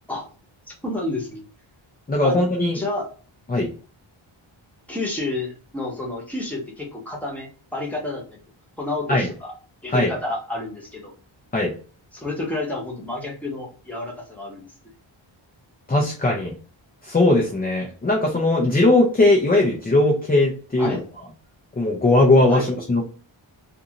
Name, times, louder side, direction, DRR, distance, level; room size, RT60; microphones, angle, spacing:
voice 1, 0.8-1.4 2.2-2.4 2.7-3.1 4.9-8.2 8.8-9.5 9.8-11.1 12.1-14.7 20.8-21.0 22.5-22.7, left 2 dB, 5° left, -3 dB, 0.9 m, -30 dB
voice 2, 2.1-2.8 3.5-3.7 9.1-9.3 9.9-10.1 11.5-11.7 15.9-16.6 17.0-21.0 21.8-23.0, left 2 dB, 20° left, -1 dB, 0.5 m, -19 dB
2.6 x 2.5 x 2.8 m, 0.39 s
wide cardioid pair, 145°, 49 cm